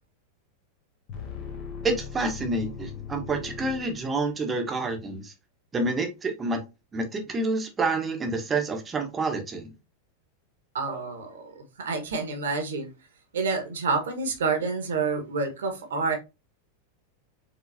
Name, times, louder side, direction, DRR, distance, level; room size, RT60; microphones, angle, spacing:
sound 1, 1.1-4.6, left 7 dB, 40° left, 1.4 m, -39 dB
voice 1, 1.8-5.3 5.7-6.6 6.9-9.7 10.9-11.0, right 3 dB, 20° right, 1.1 m, -28 dB
voice 2, 10.7-12.9 13.3-16.2, right 4 dB, 65° right, 1.4 m, -28 dB
4.7 x 3.7 x 2.7 m
figure-of-eight pair, 90°, 0 cm